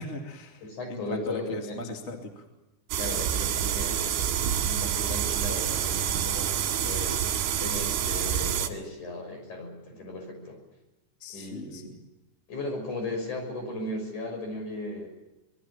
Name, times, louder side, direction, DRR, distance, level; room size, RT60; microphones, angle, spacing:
voice 1, 0.0-2.4 11.2-11.9, left 2 dB, 25° left, 3 dB, 1.5 m, -38 dB
voice 2, 0.6-1.9 3.0-7.2 7.6-10.6 11.3-11.8 12.5-15.1, left 2 dB, 40° left, 4 dB, 7.4 m, -36 dB
sound 1, 2.9-8.7, right 9 dB, 80° right, 4.2 m, -28 dB
Bowed string instrument, 4.2-9.1, right 1 dB, 55° right, 2.3 m, -44 dB
26.0 x 21.0 x 7.2 m, 1.0 s
omnidirectional pair, 5.3 m